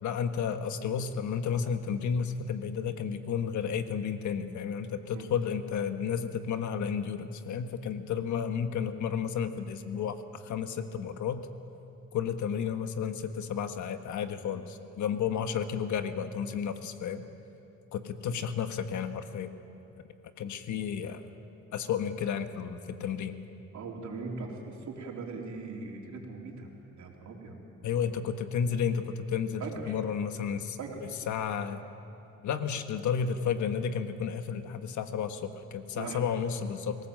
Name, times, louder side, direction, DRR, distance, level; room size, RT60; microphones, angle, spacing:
voice 1, 0.0-11.5 12.1-17.2 17.9-19.5 20.4-21.2 21.7-23.4 27.8-30.8 31.3-31.8 32.4-37.0, left 7 dB, 70° left, 8 dB, 1.5 m, -32 dB
voice 2, 23.7-27.6 29.6-30.0 30.8-31.0 36.0-36.2, right 4 dB, 70° right, 0 dB, 3.8 m, -40 dB
24.5 x 17.5 x 7.7 m, 2.7 s
cardioid pair, 90°, 30 cm